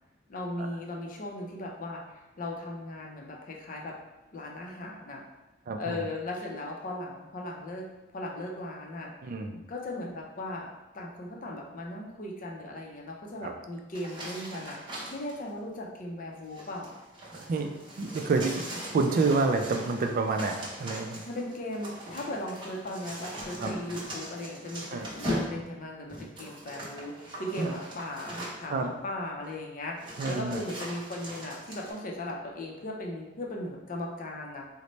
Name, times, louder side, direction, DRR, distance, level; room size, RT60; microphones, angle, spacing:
voice 1, 0.3-4.0 4.3-5.2 5.8-7.9 8.1-9.1 9.7-10.7 10.9-16.9 21.3-34.6, left 1 dB, 45° left, 0 dB, 0.5 m, -37 dB
voice 2, 5.7-6.0 9.2-9.6 13.4-13.5 17.3-17.7 18.0-18.6 18.9-21.2 23.6-23.8 24.9-25.1 27.6-27.7 28.7-28.9 30.2-30.6, right 3 dB, 45° right, 5 dB, 0.3 m, -28 dB
sound 1, 13.9-15.4 16.4-28.8 29.5-29.6 30.0-31.9, equal, 25° right, 0.8 m, -40 dB
3.9 x 2.1 x 3.1 m, 1.0 s
head